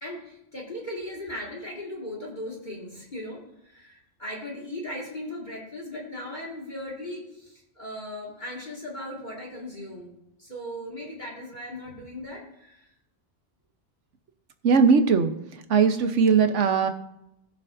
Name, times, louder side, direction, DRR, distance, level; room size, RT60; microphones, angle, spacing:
voice 1, 0.0-10.1 10.4-12.9, left 1 dB, 40° left, -3 dB, 2.1 m, -38 dB
voice 2, 14.6-15.3 15.7-16.9, right 5 dB, 85° right, 8 dB, 1.2 m, -19 dB
20.0 x 7.0 x 2.6 m, 0.84 s
omnidirectional pair, 1.2 m